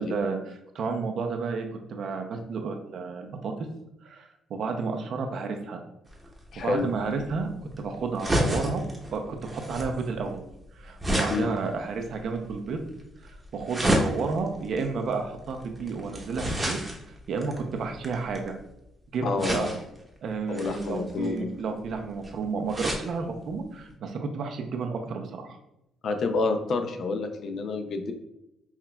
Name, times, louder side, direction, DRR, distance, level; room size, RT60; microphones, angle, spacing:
voice 1, 0.0-3.5 4.0-5.8 6.6-7.5 7.8-8.8 9.1-10.4 10.7-12.8 13.2-16.8 17.3-18.5 19.1-19.7 20.2-25.6, right 4 dB, 65° right, 4 dB, 0.5 m, -31 dB
sound 1, 6.1-18.7 19.4-20.0 20.5-23.1 23.5-23.6 23.9-24.0, equal, 20° right, 0.8 m, -31 dB
voice 2, 6.5-6.8 11.3-11.5 19.2-19.7 20.5-21.5 26.0-28.1, left 3 dB, 60° left, 7 dB, 0.5 m, -28 dB
5.7 x 2.3 x 2.2 m, 0.85 s
cardioid pair, 90°, 0 cm